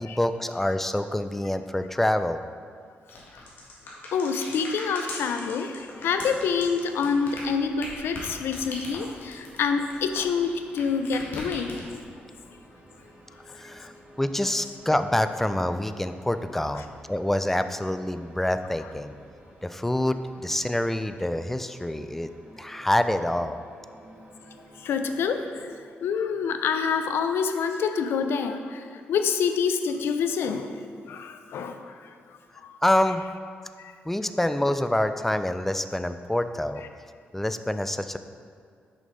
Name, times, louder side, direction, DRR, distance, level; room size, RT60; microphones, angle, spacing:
voice 1, 0.0-2.4 13.5-13.9 14.2-19.1 19.6-22.3 22.6-23.6 32.8-33.2 34.1-36.8 37.3-38.2, left 1 dB, 5° left, 10 dB, 0.3 m, -26 dB
sound 1, 3.1-10.8 11.0-12.1, left 2 dB, 60° left, 1.6 m, -39 dB
voice 2, 3.9-11.7 16.8-16.9 24.7-32.8 33.8-33.9, left 6 dB, 80° left, 8 dB, 0.4 m, -27 dB
sound 2, 5.7-25.6, right 1 dB, 35° right, 1.4 m, -52 dB
6.4 x 5.3 x 3.9 m, 2.2 s
cardioid pair, 85°, 4 cm